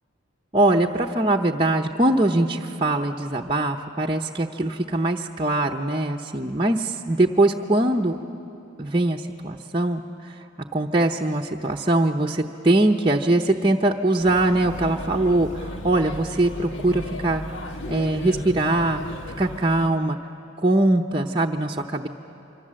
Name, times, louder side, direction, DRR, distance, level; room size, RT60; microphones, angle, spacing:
voice 1, 0.5-8.2 8.8-10.0 10.7-17.4 17.9-19.0 19.4-20.2 20.6-22.1, right 2 dB, 25° right, -1 dB, 0.8 m, -22 dB
Male speech man speaking / Child speech kid speaking / Chatter, 14.2-19.9, left 1 dB, 75° left, 1.3 m, -35 dB
26.0 x 25.0 x 7.6 m, 2.8 s
head